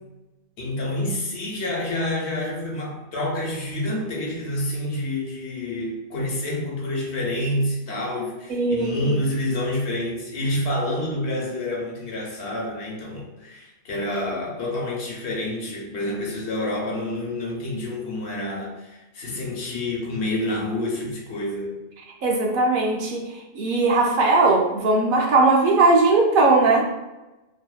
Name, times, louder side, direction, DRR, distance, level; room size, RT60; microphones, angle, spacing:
voice 1, 0.6-21.8, left 1 dB, 75° left, -3 dB, 0.9 m, -28 dB
voice 2, 8.5-9.2 22.2-26.8, right 3 dB, 60° right, -1 dB, 0.7 m, -19 dB
2.7 x 2.1 x 2.3 m, 1.0 s
omnidirectional pair, 1.1 m